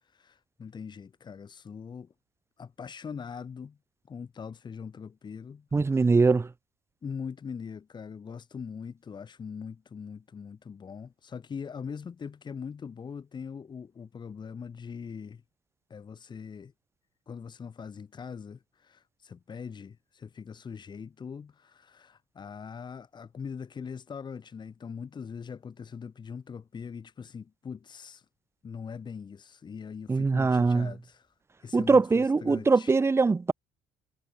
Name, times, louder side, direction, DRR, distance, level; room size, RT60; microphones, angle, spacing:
voice 1, 0.0-2.1 2.6-3.8 4.1-5.7 6.1-6.2 7.0-15.4 15.9-16.7 17.3-28.3 28.6-31.3 31.6-33.0, left 6 dB, 35° left, 2.5 m, -42 dB
voice 2, 5.7-6.5 30.1-30.9 31.7-33.5, right 4 dB, 20° right, 1.0 m, -22 dB
hypercardioid pair, 60°, 13 cm